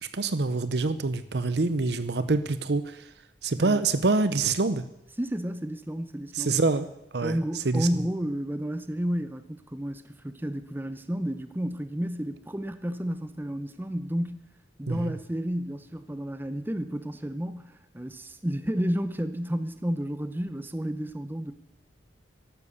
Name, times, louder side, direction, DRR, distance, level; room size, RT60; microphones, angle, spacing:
voice 1, 0.1-3.1 3.4-4.8 6.3-6.9 7.1-7.9 14.9-15.1, right 3 dB, 65° right, 12 dB, 0.8 m, -26 dB
voice 2, 5.2-6.6 7.2-14.5 14.8-21.5, equal, 10° right, 10 dB, 0.7 m, -31 dB
14.0 x 11.5 x 7.0 m, 0.84 s
head